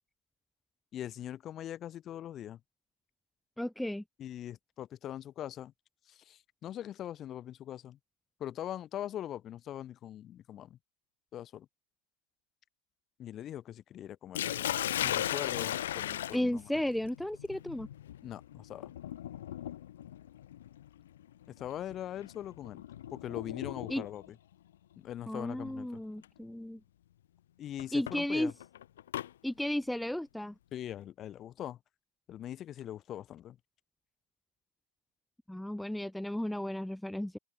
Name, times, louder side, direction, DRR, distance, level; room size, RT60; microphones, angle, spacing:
voice 1, 0.9-2.6 4.2-5.7 6.1-8.0 8.4-10.8 11.3-11.7 13.2-14.7 15.0-16.7 18.2-18.9 21.5-22.8 23.1-24.4 25.0-26.0 27.6-28.5 30.7-31.8 32.3-33.6, left 11 dB, 35° left, 2.3 m, -42 dB
voice 2, 3.6-4.0 16.3-17.9 23.9-24.0 25.3-26.8 27.9-28.5 29.4-30.5 35.5-37.4, left 1 dB, 5° left, 0.5 m, -34 dB
Sink (filling or washing), 14.3-24.3 25.4-25.7 26.2-26.3 27.8-29.3, left 11 dB, 85° left, 0.5 m, -37 dB
hypercardioid pair, 115°, 0 cm